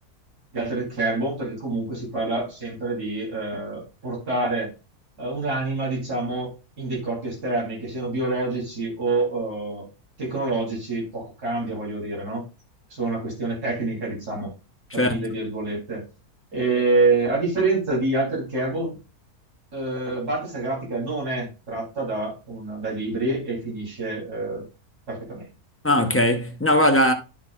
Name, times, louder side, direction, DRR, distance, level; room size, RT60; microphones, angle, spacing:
voice 1, 0.5-4.7 5.2-6.5 6.8-9.9 10.2-12.5 12.9-14.5 14.9-16.1 16.5-19.0 19.7-24.6 25.1-25.5, right 3 dB, 85° right, 4.1 m, -27 dB
voice 2, 25.8-27.1, left 1 dB, 10° left, 0.7 m, -19 dB
10.5 x 6.2 x 2.4 m
omnidirectional pair, 1.6 m